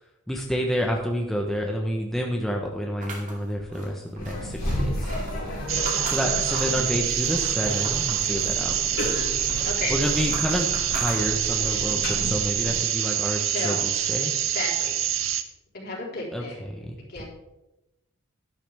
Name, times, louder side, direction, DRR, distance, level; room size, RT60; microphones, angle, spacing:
voice 1, 0.3-5.1 6.0-8.7 9.9-14.3 16.3-17.2, equal, ahead, 0 dB, 1.0 m, -29 dB
sound 1, 3.0-6.9 7.3-8.3 8.7-11.7, right 2 dB, 40° right, 2.6 m, -39 dB
sound 2, 4.2-12.8, left 1 dB, 70° left, 4.5 m, -32 dB
sound 3, 5.7-15.4, right 11 dB, 90° right, 0.8 m, -26 dB
voice 2, 5.9-6.4 9.6-9.9 13.4-13.8 14.5-15.0 15.7-16.6 17.1-17.2, left 3 dB, 55° left, -4 dB, 4.0 m, -33 dB
12.0 x 11.0 x 3.5 m, 0.95 s
head